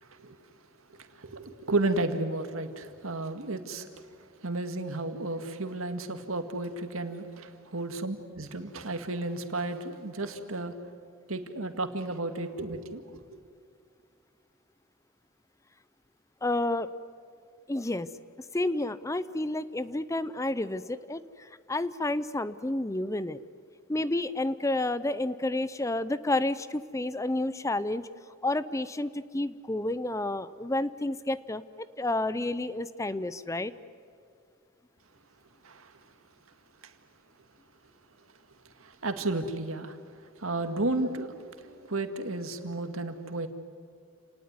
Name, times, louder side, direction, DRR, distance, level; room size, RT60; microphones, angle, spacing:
voice 1, 0.0-0.4 0.9-10.8 11.3-13.3 35.6-36.0 36.8-37.0 38.6-43.5, right 2 dB, 85° right, 7 dB, 2.0 m, -33 dB
voice 2, 16.4-16.9 17.7-18.1 18.5-23.4 23.9-28.1 28.4-31.6 32.0-33.7, left 2 dB, 15° left, 15 dB, 0.6 m, -30 dB
29.5 x 19.0 x 9.7 m, 2.3 s
head